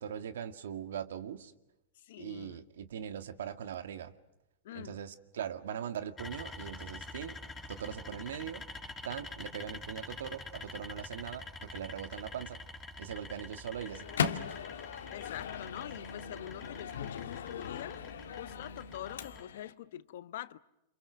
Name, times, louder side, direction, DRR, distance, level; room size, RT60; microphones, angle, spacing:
voice 1, 0.0-1.5 2.2-4.1 4.7-7.4 7.7-8.7 9.0-12.6 13.0-14.5, right 9 dB, 85° right, 2.1 m, -41 dB
voice 2, 2.0-2.6 4.6-5.0 15.1-18.0 18.3-20.6, left 13 dB, 65° left, 1.1 m, -45 dB
sound 1, 6.2-19.4, left 2 dB, 10° left, 4.7 m, -47 dB
Microwave oven, 13.7-19.7, left 8 dB, 90° left, 1.7 m, -39 dB
29.0 x 27.0 x 6.5 m
supercardioid pair, 145°, 0 cm